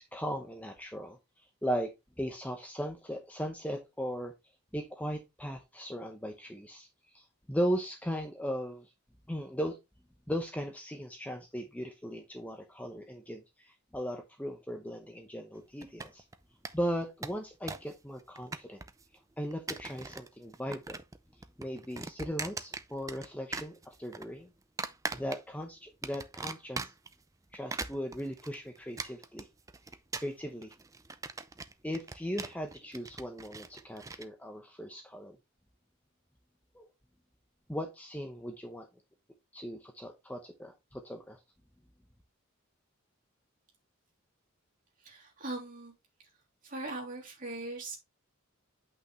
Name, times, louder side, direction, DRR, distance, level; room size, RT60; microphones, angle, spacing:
voice 1, 0.1-1.9 2.2-4.3 4.7-6.9 7.1-8.9 9.3-9.8 10.3-16.2 16.7-18.8 19.4-21.0 21.6-24.5 25.1-26.9 27.5-29.5 30.2-30.7 31.8-35.4 36.7-36.9 37.7-38.9 39.5-41.4, equal, 5° left, 0.9 m, -37 dB
sound 1, 15.8-16.3 16.6-16.7 17.0-17.9 18.2-19.0 19.5-20.3 20.5-21.2 21.4-23.3 23.5-24.2 24.8-25.6 26.0-27.1 27.5-34.2, right 4 dB, 15° right, 0.4 m, -40 dB
voice 2, 45.0-45.9 46.6-48.0, right 2 dB, 35° right, 3.2 m, -40 dB
8.5 x 5.7 x 3.2 m
head